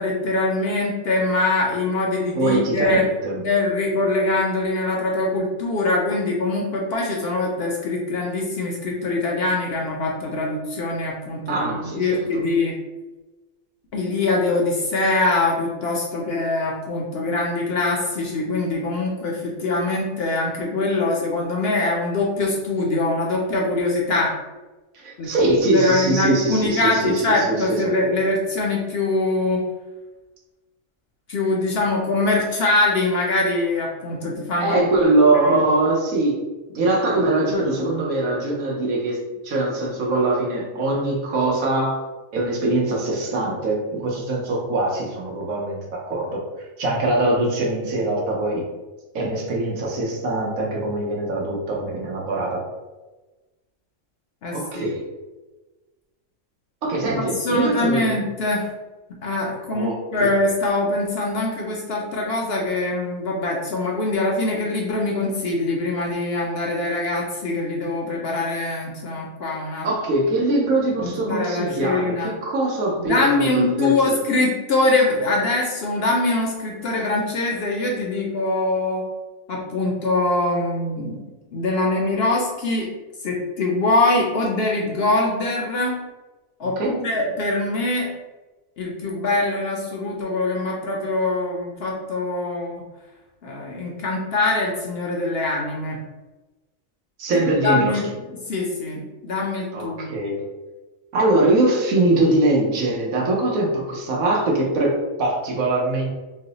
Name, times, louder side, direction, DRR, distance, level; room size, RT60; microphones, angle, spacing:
voice 1, 0.0-3.1 3.4-12.8 13.9-24.3 25.2-25.3 25.7-29.6 31.3-34.8 35.4-35.6 54.4-54.9 57.2-58.7 59.2-69.9 71.0-72.3 73.1-79.1 79.5-81.2 81.5-82.9 83.2-86.0 86.6-88.1 88.8-92.8 93.4-96.0 97.3-98.1 98.5-100.1, left 2 dB, 60° left, -1 dB, 0.7 m, -23 dB
voice 2, 2.3-3.4 11.5-12.2 24.9-27.9 34.6-36.4 36.7-42.0 42.3-46.4 46.8-48.7 49.1-52.7 54.5-55.0 56.8-58.2 59.7-60.3 69.8-74.0 86.8-86.9 97.2-98.0 99.7-100.4 101.1-106.1, right 2 dB, 85° right, -2 dB, 1.3 m, -22 dB
3.1 x 2.1 x 3.8 m, 1.1 s
omnidirectional pair, 1.4 m